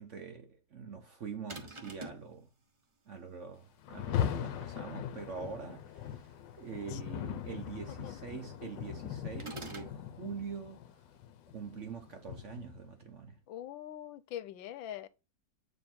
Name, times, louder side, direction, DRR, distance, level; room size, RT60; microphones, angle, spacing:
voice 1, 0.0-2.5 3.1-6.3 6.6-10.8 11.5-13.4, right 6 dB, 55° right, 0.9 m, -44 dB
sound 1, 1.5-2.3 9.4-10.0, right 2 dB, 30° right, 0.6 m, -44 dB
Rain, 3.8-12.9, left 10 dB, 75° left, 1.4 m, -39 dB
voice 2, 13.5-15.1, left 11 dB, 90° left, 1.4 m, -43 dB
9.1 x 3.2 x 4.2 m
omnidirectional pair, 2.1 m